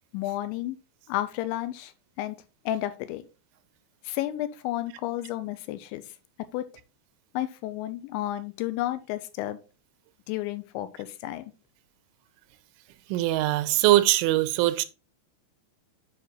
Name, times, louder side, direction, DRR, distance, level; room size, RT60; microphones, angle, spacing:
voice 1, 0.1-0.8 1.1-2.4 2.7-3.3 4.0-6.7 7.3-9.6 10.3-11.4, left 14 dB, 85° left, 2.8 m, -32 dB
voice 2, 13.1-14.9, right 15 dB, 90° right, 3.2 m, -22 dB
7.9 x 5.1 x 3.8 m
omnidirectional pair, 5.4 m